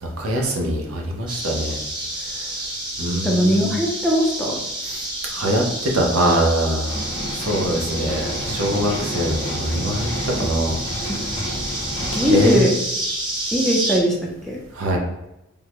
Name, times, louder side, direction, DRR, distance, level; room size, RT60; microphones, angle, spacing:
voice 1, 0.0-1.8 2.4-2.5 3.0-3.7 4.9-5.0 5.3-7.0 7.3-10.8 12.3-12.7 14.7-15.0, right 1 dB, 75° right, 0 dB, 0.6 m, -23 dB
sound 1, 1.3-14.0, right 1 dB, 20° right, 1.0 m, -29 dB
voice 2, 3.2-4.6 11.1-11.2 12.1-12.7 13.5-14.2 14.4-14.6, equal, ahead, -3 dB, 0.5 m, -19 dB
sound 2, 6.8-12.6, equal, 75° left, 0.7 m, -30 dB
3.5 x 2.1 x 2.9 m, 0.91 s
head